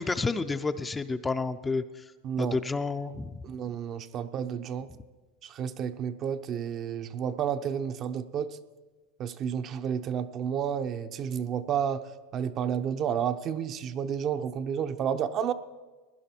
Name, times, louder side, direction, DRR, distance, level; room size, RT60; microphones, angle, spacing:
voice 1, 0.0-2.1 2.4-3.4, left 3 dB, 15° left, 10 dB, 0.6 m, -30 dB
voice 2, 2.2-2.6 3.4-4.9 5.4-8.6 9.2-15.5, right 8 dB, 40° right, 9 dB, 0.7 m, -31 dB
16.5 x 10.5 x 4.5 m, 1.3 s
hypercardioid pair, 105°, 0 cm